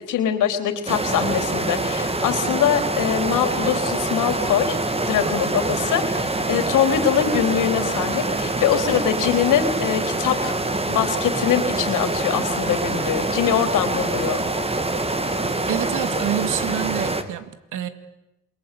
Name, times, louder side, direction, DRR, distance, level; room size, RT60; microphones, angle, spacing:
voice 1, 0.1-4.8 5.1-10.6 10.9-14.4, left 9 dB, 85° left, 8 dB, 3.9 m, -23 dB
sound 1, 0.9-17.2, right 2 dB, 20° right, 2.5 m, -25 dB
voice 2, 15.7-17.9, right 11 dB, 85° right, 11 dB, 2.3 m, -27 dB
28.0 x 23.0 x 8.6 m, 0.92 s
cardioid pair, 90°, 30 cm